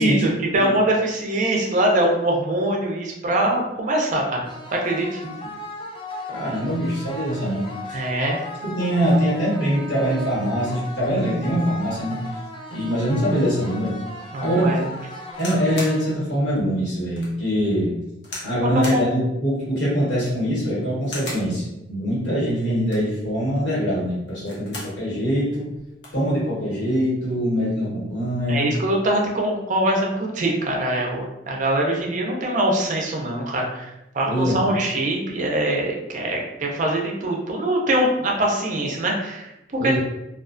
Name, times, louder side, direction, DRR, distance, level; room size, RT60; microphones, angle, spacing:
voice 1, 0.0-5.2 7.9-8.4 14.3-14.8 18.9-19.0 28.5-40.0, right 1 dB, 45° right, 0 dB, 0.5 m, -23 dB
sound 1, 4.4-16.4, left 1 dB, 30° left, 0.3 m, -37 dB
voice 2, 6.3-8.0 8.6-12.2 12.7-14.0 14.4-14.8 15.4-18.0 18.4-25.7 26.1-28.7 34.2-34.6 39.8-40.0, equal, 85° left, -7 dB, 1.2 m, -23 dB
sound 2, 15.3-16.0 16.6-16.7 17.2-17.3 18.2-18.5 18.8-19.1 20.1-20.5 21.0-21.5 22.7-23.2 24.3-25.0 25.4-25.5 25.7-26.2 27.1-27.3, left 2 dB, 70° left, 0.8 m, -36 dB
2.3 x 2.2 x 2.4 m, 0.91 s
head